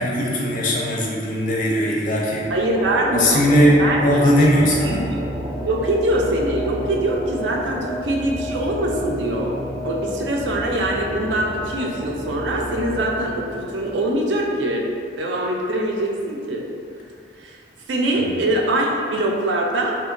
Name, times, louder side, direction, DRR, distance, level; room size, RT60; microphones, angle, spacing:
voice 1, 0.0-2.5 3.1-5.0 18.2-18.3, equal, 45° left, -3 dB, 0.4 m, -19 dB
sound 1, 2.4-14.9, equal, 15° right, 0.5 m, -31 dB
voice 2, 2.5-3.4 3.8-5.0 5.6-9.6 9.8-14.8 15.2-16.7 17.4-17.6 17.9-20.0, right 1 dB, 75° right, -1 dB, 0.4 m, -23 dB
2.8 x 2.1 x 2.5 m, 2.3 s
head